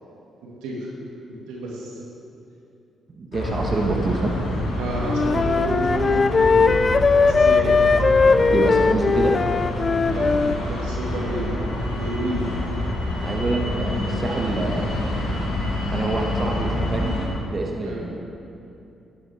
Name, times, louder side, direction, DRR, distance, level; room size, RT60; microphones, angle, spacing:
voice 1, 0.4-0.9 1.5-2.0 4.8-6.8 7.2-7.7 8.2-8.5 10.1-12.8 17.8-18.0, right 1 dB, 90° right, -3 dB, 1.9 m, -30 dB
voice 2, 3.1-4.3 8.5-9.3 13.2-14.9 15.9-18.1, right 2 dB, 40° right, 1 dB, 1.3 m, -26 dB
sound 1, 3.3-17.2, left 1 dB, 85° left, 2.0 m, -27 dB
Wind instrument woodwind instrument, 5.0-10.6, left 4 dB, 40° left, 0.4 m, -19 dB
12.0 x 10.5 x 3.5 m, 2.7 s
supercardioid pair, 55°, 0 cm